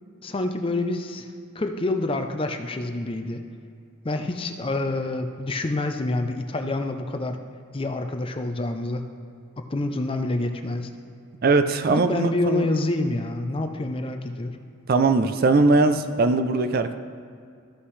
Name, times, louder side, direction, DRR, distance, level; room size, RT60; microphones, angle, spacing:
voice 1, 0.2-1.3 1.5-3.4 4.0-7.4 7.7-9.0 9.6-10.9 11.9-14.6, left 2 dB, 25° left, 6 dB, 0.5 m, -27 dB
voice 2, 11.4-12.7 14.9-16.9, right 3 dB, 45° right, 9 dB, 0.4 m, -20 dB
14.0 x 5.8 x 3.2 m, 2.4 s
head